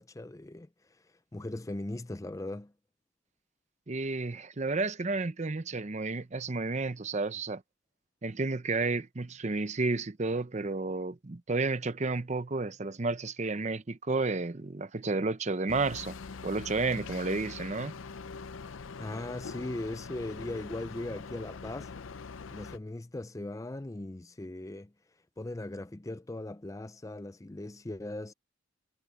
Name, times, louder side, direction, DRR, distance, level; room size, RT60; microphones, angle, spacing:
voice 1, 0.0-2.7 19.0-21.9 22.5-24.9 25.4-28.3, left 1 dB, 15° left, 0.5 m, -39 dB
voice 2, 3.9-7.6 8.2-16.2 16.4-17.9, right 3 dB, 35° right, 0.7 m, -31 dB
sound 1, 15.7-22.8, left 5 dB, 75° left, 0.5 m, -43 dB
head